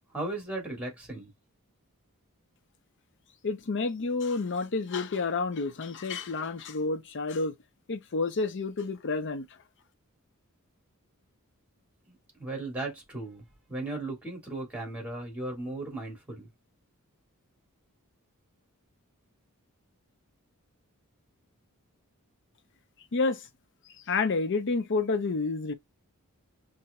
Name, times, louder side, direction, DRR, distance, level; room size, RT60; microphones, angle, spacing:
voice 1, 0.1-1.3 12.1-16.5, right 2 dB, 5° right, 1.7 m, -36 dB
voice 2, 3.4-7.6 7.9-9.5 23.1-23.5 24.1-25.7, left 3 dB, 55° left, 0.6 m, -29 dB
5.5 x 2.6 x 2.2 m
head